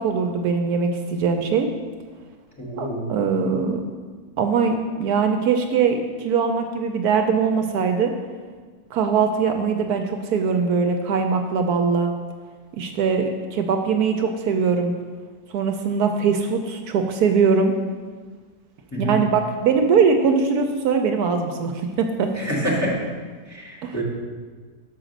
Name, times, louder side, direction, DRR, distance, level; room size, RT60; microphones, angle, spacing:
voice 1, 0.0-1.7 2.8-3.8 4.4-8.1 8.9-12.1 12.7-14.9 15.5-17.7 19.0-22.3 23.8-23.9, right 5 dB, 75° right, 5 dB, 1.1 m, -21 dB
voice 2, 2.6-3.1 18.9-19.2 22.3-23.0 23.5-24.0, right 1 dB, 10° left, -6 dB, 1.6 m, -26 dB
6.3 x 4.9 x 6.5 m, 1.5 s
omnidirectional pair, 1.7 m